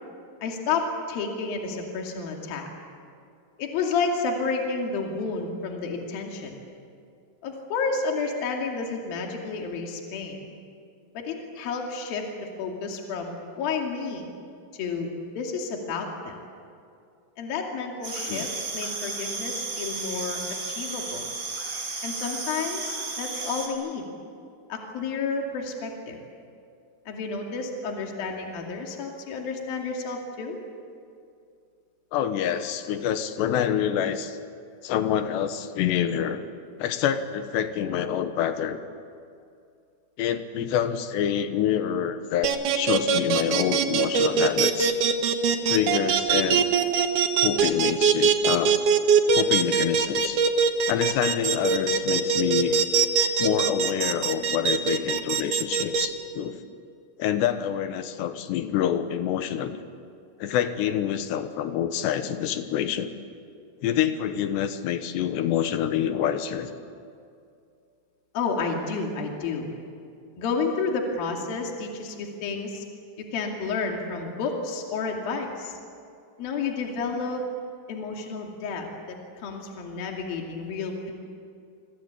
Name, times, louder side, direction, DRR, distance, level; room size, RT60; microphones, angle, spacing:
voice 1, 0.4-2.7 3.6-6.6 7.4-10.5 11.1-12.3 12.6-14.3 14.7-15.1 15.4-16.4 17.4-20.4 20.7-21.3 22.0-24.1 24.7-26.2 27.1-30.6 68.3-69.7 70.4-72.8 73.2-75.7 76.4-77.4 77.9-81.1, left 4 dB, 60° left, 1 dB, 4.2 m, -30 dB
sound 1, 18.0-23.7, right 3 dB, 40° right, 4.9 m, -33 dB
voice 2, 32.1-34.4 34.8-36.5 36.8-38.8 40.2-44.9 45.6-46.8 47.4-48.8 49.3-50.4 50.9-52.8 53.4-56.6 57.2-59.8 60.4-63.1 63.8-66.7, left 9 dB, 80° left, 9 dB, 3.4 m, -27 dB
sound 2, 42.4-56.1, right 6 dB, 60° right, 2.5 m, -21 dB
28.5 x 24.0 x 8.4 m, 2.4 s
omnidirectional pair, 4.9 m